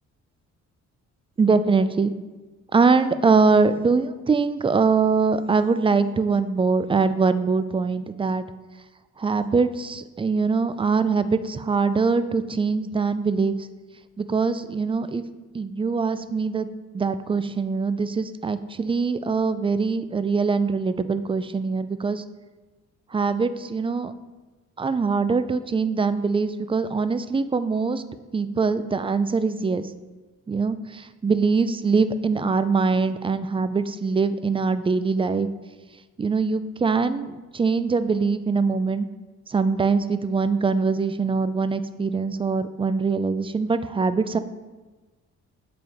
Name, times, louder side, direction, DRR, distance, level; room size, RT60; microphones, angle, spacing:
voice 1, 1.4-2.1 2.7-8.4 9.2-13.6 14.2-15.2 15.5-16.7 16.9-22.2 23.1-24.1 24.8-28.0 28.3-29.9 30.5-35.5 36.2-39.1 39.5-44.4, right 4 dB, 20° right, 12 dB, 0.4 m, -23 dB
7.5 x 4.8 x 5.2 m, 1.3 s
cardioid pair, 90°, 30 cm